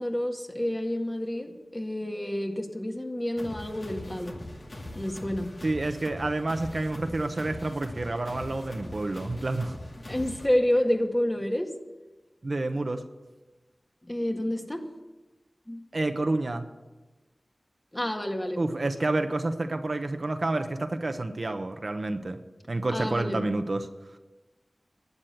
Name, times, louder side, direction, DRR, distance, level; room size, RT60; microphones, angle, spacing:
voice 1, 0.0-4.4 4.9-5.6 10.1-11.8 14.0-14.9 15.7-15.8 17.9-18.6 22.9-23.5, left 1 dB, 25° left, 3 dB, 1.9 m, -29 dB
sound 1, 3.4-10.5, left 1 dB, 60° left, 2.4 m, -41 dB
voice 2, 5.6-9.7 12.4-13.0 15.9-16.7 18.6-22.4 22.7-23.9, right 2 dB, 60° right, 7 dB, 1.0 m, -29 dB
12.0 x 8.7 x 9.3 m, 1.2 s
wide cardioid pair, 45°, 0 cm